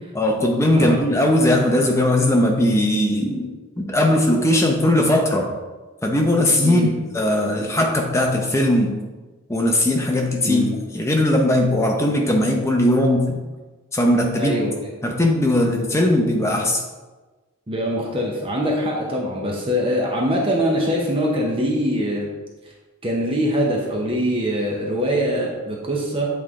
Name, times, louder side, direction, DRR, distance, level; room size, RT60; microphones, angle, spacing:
voice 1, 0.1-3.5 3.8-5.5 6.0-9.0 9.5-10.6 10.9-13.4 13.9-14.6 15.0-16.8, left 1 dB, 10° left, 1 dB, 0.6 m, -19 dB
voice 2, 14.4-14.9 17.7-22.3 23.0-26.3, equal, 25° right, -2 dB, 0.7 m, -23 dB
7.9 x 3.3 x 3.6 m, 1.2 s
head